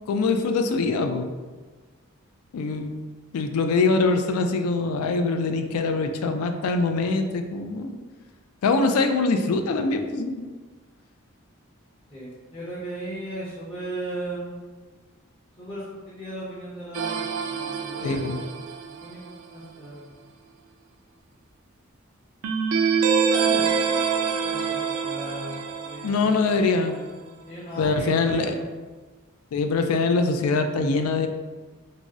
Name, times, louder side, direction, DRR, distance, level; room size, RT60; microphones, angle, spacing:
voice 1, 0.1-1.3 2.5-2.9 3.3-8.0 8.6-10.5 18.0-18.4 26.0-26.9 27.8-28.5 29.5-31.3, left 3 dB, 85° left, 7 dB, 0.3 m, -23 dB
voice 2, 12.1-14.5 15.6-18.5 18.8-20.1 23.3-24.0 24.4-27.1 27.5-28.6, right 1 dB, 25° left, -11 dB, 0.6 m, -37 dB
sound 1, 16.9-19.3 22.4-26.9, right 6 dB, 75° right, 0.3 m, -26 dB
2.6 x 2.0 x 3.5 m, 1.3 s
head